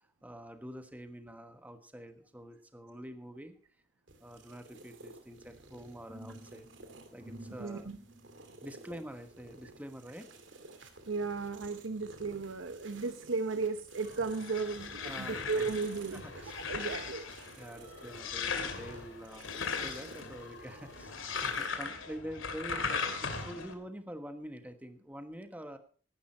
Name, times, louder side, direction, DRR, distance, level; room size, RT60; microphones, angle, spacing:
voice 1, 0.0-3.6 4.2-6.7 7.1-7.9 8.6-10.3 15.0-15.7 16.1-16.8 17.5-25.8, equal, 10° right, 8 dB, 1.2 m, -46 dB
sound 1, 4.1-21.7, right 2 dB, 70° right, 2.3 m, -54 dB
sound 2, 5.3-11.1 11.6-12.7 13.2-13.4, right 1 dB, 30° right, 2.0 m, -54 dB
voice 2, 7.6-8.0 11.1-16.2 16.6-17.3, right 4 dB, 85° right, 9 dB, 0.9 m, -35 dB
sound 3, 14.1-23.7, left 5 dB, 90° left, 2.4 m, -38 dB
16.0 x 11.0 x 4.3 m, 0.43 s
head